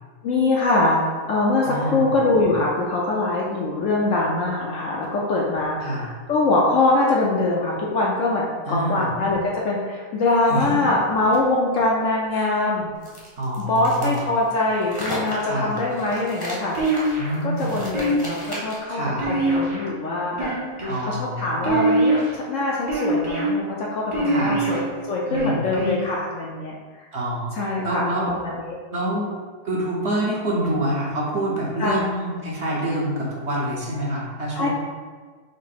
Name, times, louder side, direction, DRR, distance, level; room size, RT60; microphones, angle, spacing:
voice 1, 0.2-12.9 13.6-16.8 17.4-20.5 21.0-26.8 27.5-28.8 31.8-31.9 34.5-34.7, left 2 dB, 65° left, -3 dB, 0.8 m, -23 dB
voice 2, 1.6-2.1 5.8-6.1 8.7-9.1 10.5-10.8 12.3-12.4 13.4-14.2 15.4-15.8 17.2-17.8 18.9-19.3 20.9-21.7 24.3-24.6 25.3-25.6 27.1-27.5 27.8-28.3 28.9-29.3 29.6-34.7, right 1 dB, 50° right, -5 dB, 1.0 m, -26 dB
sound 1, 13.0-18.9, equal, 20° left, 0.7 m, -35 dB
sound 2, 16.7-17.4 17.9-18.5 19.2-19.9 20.3-21.0 21.6-22.3 22.9-23.5 24.1-24.8 25.3-26.0, right 2 dB, 30° right, 0.6 m, -23 dB
5.3 x 2.0 x 4.1 m, 1.5 s
omnidirectional pair, 1.7 m